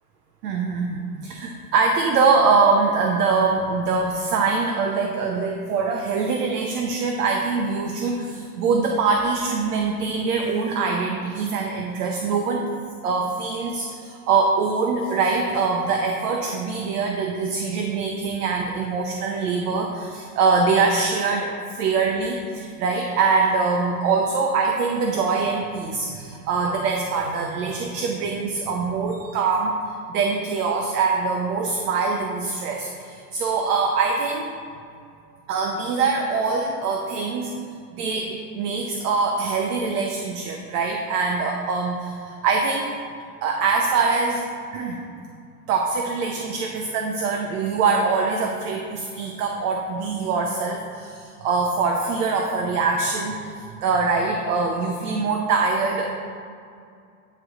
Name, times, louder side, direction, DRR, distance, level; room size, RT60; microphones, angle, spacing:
voice 1, 0.4-12.7 13.0-29.8 30.1-34.5 35.5-37.5 37.9-42.8 43.4-44.4 44.7-45.0 45.7-56.1, right 4 dB, 75° right, 1 dB, 0.8 m, -23 dB
9.2 x 3.4 x 3.7 m, 2.4 s
hypercardioid pair, 120°, 46 cm